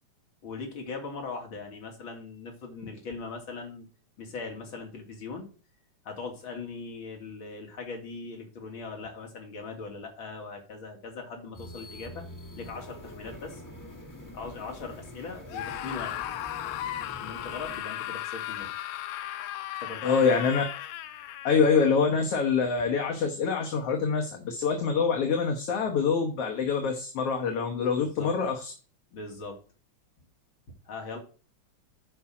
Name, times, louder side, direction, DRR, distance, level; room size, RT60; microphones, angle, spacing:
voice 1, 0.4-3.9 4.2-5.5 6.0-12.2 12.6-13.6 14.3-16.2 17.0-18.7 19.8-20.4 22.8-22.9 28.0-28.3 29.1-29.6 30.8-31.2, left 4 dB, 45° left, 1 dB, 2.8 m, -40 dB
sound 1, 11.5-17.8, left 1 dB, 10° left, 1.2 m, -45 dB
Screaming, 15.5-22.0, left 13 dB, 80° left, 2.1 m, -36 dB
voice 2, 20.0-20.6 21.4-28.7, left 5 dB, 60° left, 2 dB, 2.0 m, -25 dB
10.5 x 5.2 x 4.9 m, 0.37 s
omnidirectional pair, 3.3 m